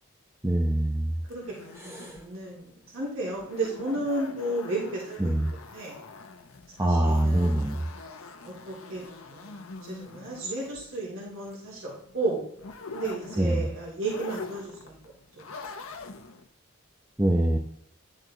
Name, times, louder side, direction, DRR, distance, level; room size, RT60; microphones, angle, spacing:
voice 1, 0.4-1.2 1.8-2.2 5.2-5.5 6.8-7.8 13.4-13.7 17.2-17.6, right 1 dB, 15° right, 2 dB, 0.7 m, -24 dB
sound 1, 1.3-16.5, left 4 dB, 90° left, 0.9 m, -45 dB
voice 2, 1.3-5.2 5.7-6.0 6.8-7.9 8.4-9.0 9.3-12.4 12.9-14.9 15.4-15.5, right 2 dB, 85° right, -7 dB, 3.7 m, -33 dB
11.0 x 6.3 x 3.9 m, 0.67 s
head